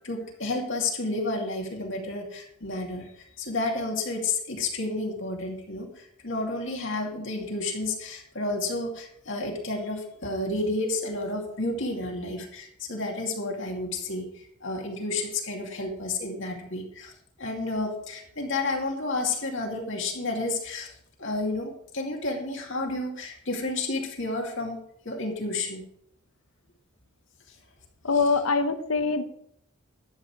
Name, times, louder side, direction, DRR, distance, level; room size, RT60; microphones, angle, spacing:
voice 1, 0.0-17.1 17.4-20.9 21.2-24.8 25.0-25.9, left 2 dB, 55° left, 1 dB, 2.4 m, -31 dB
voice 2, 28.0-29.2, left 4 dB, 70° left, 9 dB, 1.1 m, -23 dB
12.0 x 8.7 x 4.8 m, 0.70 s
head